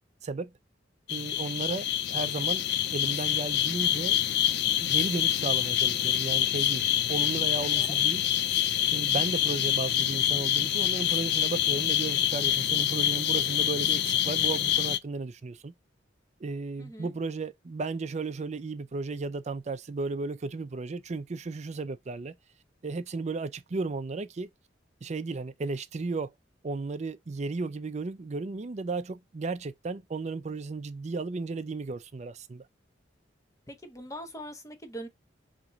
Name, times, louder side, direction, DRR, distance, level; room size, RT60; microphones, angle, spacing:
sound 1, 1.1-15.0, left 11 dB, 65° left, 0.3 m, -26 dB
voice 1, 1.1-2.6 2.9-4.2 4.8-8.2 8.9-15.7 16.4-22.3 22.8-24.5 25.0-26.3 26.6-32.6, right 3 dB, 40° right, 0.4 m, -34 dB
voice 2, 7.6-8.0 16.8-17.1 33.7-35.1, equal, 20° left, 0.9 m, -42 dB
3.6 x 3.0 x 3.9 m
head